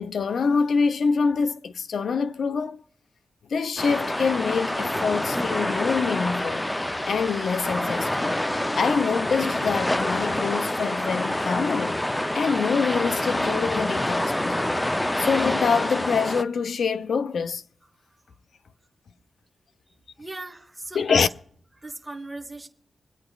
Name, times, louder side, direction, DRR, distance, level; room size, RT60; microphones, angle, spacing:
voice 1, 0.0-2.8 3.5-6.7 7.1-8.4 8.8-12.0 12.3-14.8 15.2-17.6 20.9-21.3, left 5 dB, 70° left, 0.5 m, -25 dB
sound 1, 3.8-16.4, left 1 dB, 10° left, 0.4 m, -27 dB
voice 2, 20.2-21.3 21.8-22.7, right 2 dB, 10° right, 1.2 m, -37 dB
26.0 x 8.8 x 2.3 m
wide cardioid pair, 110°, 0 cm